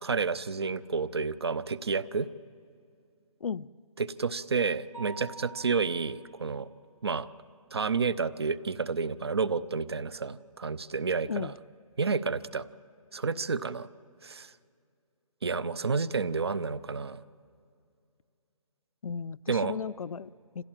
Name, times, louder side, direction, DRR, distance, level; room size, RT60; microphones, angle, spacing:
voice 1, 0.0-2.3 4.0-6.7 7.0-7.3 7.7-11.5 12.0-12.7 13.1-13.9 14.2-14.5 15.4-17.2 19.5-19.8, right 5 dB, 45° right, 18 dB, 0.6 m, -30 dB
Mallet percussion, 4.9-6.7, right 3 dB, 60° right, 2.9 m, -47 dB
voice 2, 19.0-20.6, left 6 dB, 70° left, 18 dB, 0.5 m, -35 dB
26.5 x 16.0 x 7.5 m, 2.4 s
hypercardioid pair, 175°, 19 cm